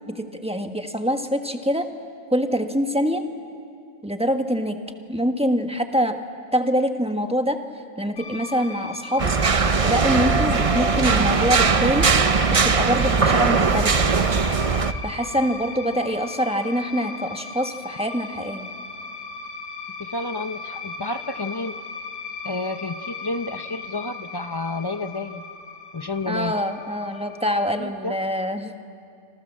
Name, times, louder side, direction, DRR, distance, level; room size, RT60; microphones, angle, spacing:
voice 1, 0.1-1.9 2.3-3.3 4.0-4.8 5.1-6.2 6.5-7.6 8.0-9.3 9.8-12.1 12.5-14.1 15.0-18.7 26.3-28.7, equal, 5° right, 5 dB, 1.3 m, -24 dB
sound 1, 8.2-27.7, left 4 dB, 80° left, 3.0 m, -37 dB
sound 2, 9.2-14.9, right 5 dB, 40° right, 0.5 m, -20 dB
voice 2, 20.0-21.8 22.4-25.4 25.9-26.5 27.8-28.1, left 2 dB, 35° left, 9 dB, 0.4 m, -30 dB
29.0 x 26.5 x 7.5 m, 2.4 s
omnidirectional pair, 1.6 m